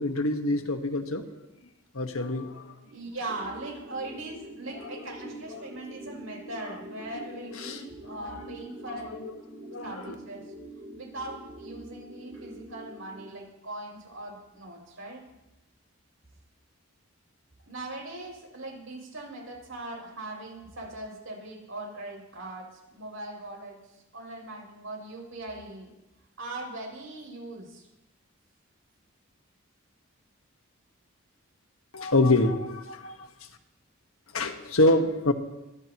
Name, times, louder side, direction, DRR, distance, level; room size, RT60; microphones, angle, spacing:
voice 1, 0.0-1.4 1.9-2.7 5.5-5.7 7.6-7.8 9.2-9.3 9.7-10.1 31.9-33.1 34.3-35.3, left 2 dB, 85° left, 6 dB, 1.5 m, -26 dB
voice 2, 2.9-9.3 9.8-10.4 10.9-15.2 17.7-23.8 24.1-25.9 26.4-27.9, right 2 dB, 75° right, -1 dB, 6.8 m, -40 dB
sound 1, 3.3-13.3, right 1 dB, 30° right, 2.4 m, -45 dB
24.0 x 15.5 x 3.0 m, 0.97 s
head